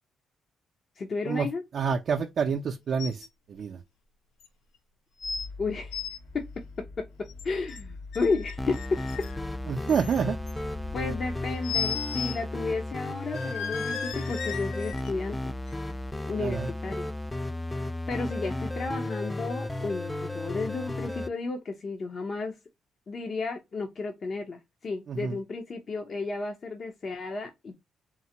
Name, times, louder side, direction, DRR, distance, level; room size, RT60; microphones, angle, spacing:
voice 1, 1.0-1.6 5.6-6.0 6.3-6.5 6.8-9.3 10.9-15.6 16.3-17.1 17.7-17.8 18.1-22.6 23.1-27.7, left 3 dB, 45° left, 0.7 m, -33 dB
voice 2, 1.7-3.8 9.7-10.4 16.4-16.7 25.1-25.4, right 6 dB, 55° right, 0.4 m, -28 dB
sound 1, 3.0-3.3 3.6-3.7 4.4-4.5 5.2-5.5 5.8-6.2 7.3-7.8 8.1-9.4 9.9-10.5 11.6-12.4 12.7-12.8 13.3-15.1 15.7-15.8, left 7 dB, 85° left, 0.7 m, -35 dB
sound 2, 5.2-11.6, left 3 dB, 70° left, 1.9 m, -44 dB
sound 3, 8.6-21.3, left 1 dB, 10° left, 0.3 m, -34 dB
3.9 x 2.1 x 2.8 m
cardioid pair, 90°, 0 cm